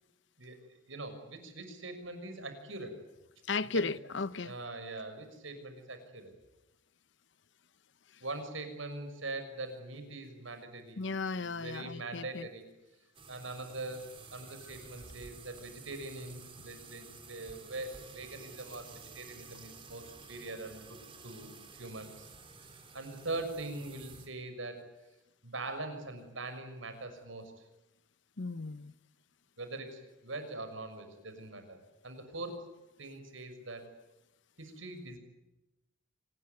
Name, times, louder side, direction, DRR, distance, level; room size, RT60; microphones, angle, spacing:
voice 1, 0.4-2.9 3.7-3.9 4.4-6.3 8.2-12.6 13.3-14.0 14.3-21.0 21.2-21.5 21.8-22.3 22.9-24.8 25.4-27.5 29.6-31.8 32.0-32.6 33.0-33.9 34.6-35.2, right 2 dB, 75° right, 6.2 m, -42 dB
voice 2, 3.5-4.5 11.0-12.4 28.4-28.9, left 3 dB, 65° left, 0.9 m, -35 dB
sound 1, 13.1-24.3, right 4 dB, 25° right, 3.4 m, -52 dB
26.0 x 20.0 x 9.6 m
head